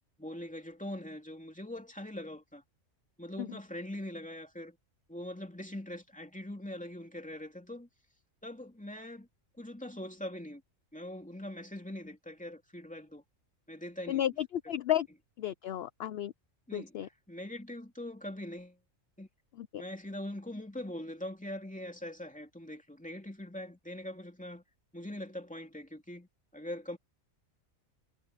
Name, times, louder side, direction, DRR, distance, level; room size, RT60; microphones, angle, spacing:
voice 1, 0.2-2.6 3.2-4.8 5.1-7.9 8.4-9.3 9.6-10.6 10.9-13.2 13.7-14.3 16.7-18.8 19.2-19.3 19.8-24.6 24.9-27.0, left 1 dB, 5° left, 2.7 m, -42 dB
voice 2, 14.1-15.1 15.4-16.3 16.7-17.1 19.6-19.8, left 11 dB, 60° left, 0.7 m, -33 dB
omnidirectional pair, 1.4 m